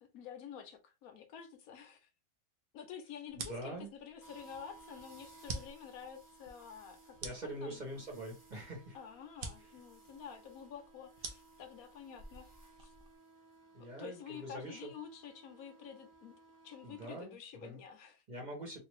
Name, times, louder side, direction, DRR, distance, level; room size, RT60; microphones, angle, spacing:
voice 1, 0.0-2.1 2.7-7.2 7.6-7.8 8.9-12.5 12.8-12.9 14.0-16.4 16.6-18.2, left 8 dB, 75° left, 1.1 m, -49 dB
sound 1, 3.3-13.2, right 4 dB, 55° right, 0.7 m, -49 dB
voice 2, 3.4-3.9 7.2-9.0 13.7-14.9 16.8-17.8 18.3-18.8, right 1 dB, 35° right, 1.1 m, -44 dB
sound 2, 4.2-17.2, right 2 dB, 15° right, 0.8 m, -60 dB
3.3 x 2.4 x 3.0 m
omnidirectional pair, 1.6 m